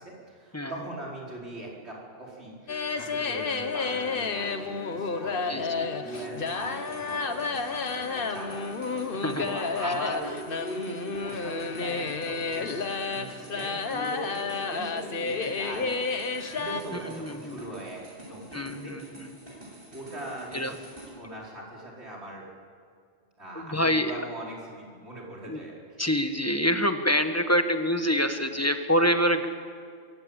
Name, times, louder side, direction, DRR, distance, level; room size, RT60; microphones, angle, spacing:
voice 1, 0.0-8.7 9.0-9.1 9.4-12.9 13.1-16.0 16.5-18.0 18.3-19.0 19.9-20.8 21.2-22.5 23.4-25.8 26.3-26.4, right 1 dB, 65° right, -4 dB, 4.9 m, -41 dB
sound 1, 2.7-16.8, left 4 dB, 50° left, 1.3 m, -31 dB
voice 2, 5.5-5.9 9.2-9.5 9.8-9.9 16.9-17.6 18.5-19.3 20.5-20.7 23.5-24.1 25.5-25.6 26.0-29.5, equal, 15° left, 7 dB, 1.2 m, -26 dB
sound 2, 6.1-21.1, right 1 dB, 50° right, 8.4 m, -47 dB
23.5 x 16.0 x 8.8 m, 2.2 s
omnidirectional pair, 1.2 m